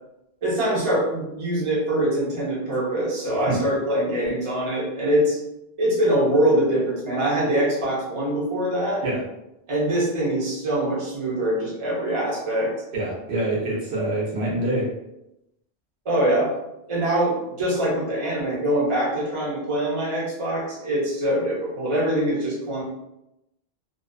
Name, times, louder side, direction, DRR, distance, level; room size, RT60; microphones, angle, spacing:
voice 1, 0.4-5.4 5.8-9.0 9.7-12.7 16.0-16.5 16.9-22.8, right 1 dB, 35° right, -5 dB, 0.7 m, -23 dB
voice 2, 12.9-14.9, right 1 dB, 85° right, -4 dB, 1.1 m, -25 dB
2.5 x 2.4 x 2.2 m, 0.87 s
omnidirectional pair, 1.0 m